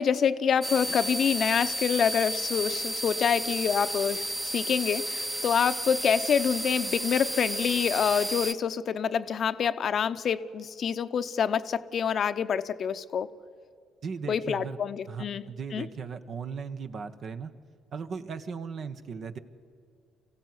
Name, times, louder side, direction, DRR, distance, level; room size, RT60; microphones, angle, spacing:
voice 1, 0.0-13.3 14.3-15.4 15.7-15.9, left 7 dB, 55° left, 12 dB, 0.8 m, -27 dB
sound 1, 0.6-8.5, right 1 dB, 10° right, 0.9 m, -32 dB
voice 2, 14.0-14.8 15.1-17.5 17.9-19.4, right 5 dB, 55° right, 8 dB, 1.3 m, -37 dB
24.0 x 15.5 x 9.6 m, 2.4 s
supercardioid pair, 65°, 0 cm